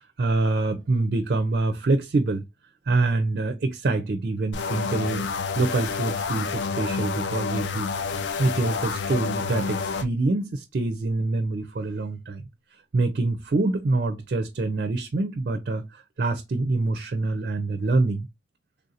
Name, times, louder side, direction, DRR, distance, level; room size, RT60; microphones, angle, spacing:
voice 1, 0.2-2.4 2.9-5.3 5.6-7.9 8.4-12.4 12.9-15.9 16.2-18.3, right 2 dB, 50° right, 0.4 m, -25 dB
sound 1, 4.5-10.1, left 5 dB, 65° left, 0.4 m, -29 dB
3.4 x 2.5 x 2.7 m
head